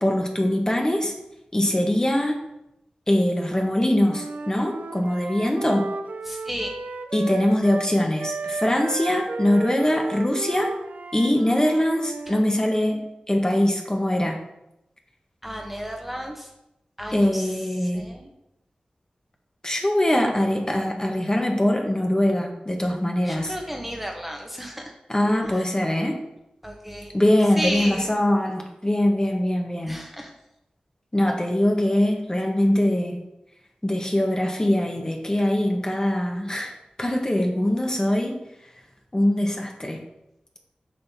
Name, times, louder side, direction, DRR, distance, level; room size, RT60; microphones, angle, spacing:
voice 1, 0.0-1.1 1.5-2.4 3.1-5.9 7.1-10.7 11.1-14.4 17.1-18.1 19.6-23.5 25.1-26.2 27.1-30.0 31.1-33.2 33.8-38.3 39.1-40.0, left 1 dB, 25° left, 2 dB, 1.1 m, -22 dB
Wind instrument woodwind instrument, 4.0-12.5, right 3 dB, 80° right, 0.5 m, -34 dB
voice 2, 6.3-6.7 15.4-16.5 17.0-18.3 23.2-24.9 25.4-25.7 26.6-27.1 27.6-28.1 29.9-30.3, equal, 5° right, 1 dB, 1.0 m, -33 dB
7.6 x 5.5 x 2.8 m, 0.88 s
cardioid pair, 50°, 3 cm